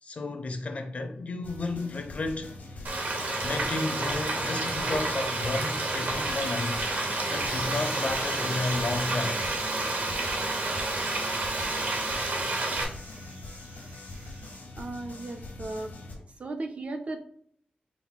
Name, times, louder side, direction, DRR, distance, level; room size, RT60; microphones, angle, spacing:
voice 1, 0.0-2.5 3.4-6.9 7.3-9.4, left 2 dB, 50° left, 0.5 m, -32 dB
sound 1, 1.4-16.1, left 2 dB, 75° left, 1.0 m, -43 dB
Frying (food), 2.8-12.8, right 2 dB, 65° right, 0.9 m, -30 dB
sound 2, 7.4-14.6, right 2 dB, 85° right, 1.5 m, -45 dB
voice 2, 14.8-15.9 16.4-17.3, right 2 dB, 50° right, 0.4 m, -36 dB
4.2 x 2.2 x 4.2 m
wide cardioid pair, 155°, 3 cm